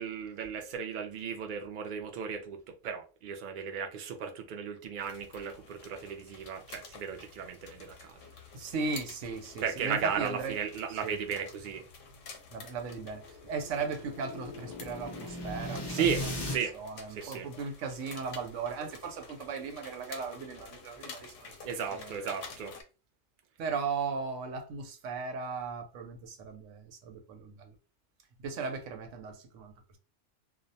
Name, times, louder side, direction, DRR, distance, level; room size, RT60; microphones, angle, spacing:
voice 1, 0.0-8.2 9.6-11.9 15.9-16.8 17.1-17.5 21.6-22.7, right 7 dB, 60° right, 0.5 m, -35 dB
sound 1, 5.0-22.8, left 5 dB, 85° left, 1.0 m, -50 dB
voice 2, 8.5-10.6 10.9-11.2 12.5-16.3 16.7-22.3 23.6-27.7 28.4-30.0, right 5 dB, 85° right, 0.9 m, -37 dB
sound 2, 13.3-16.6, left 1 dB, 40° left, 0.4 m, -38 dB
2.3 x 2.1 x 2.6 m
omnidirectional pair, 1.2 m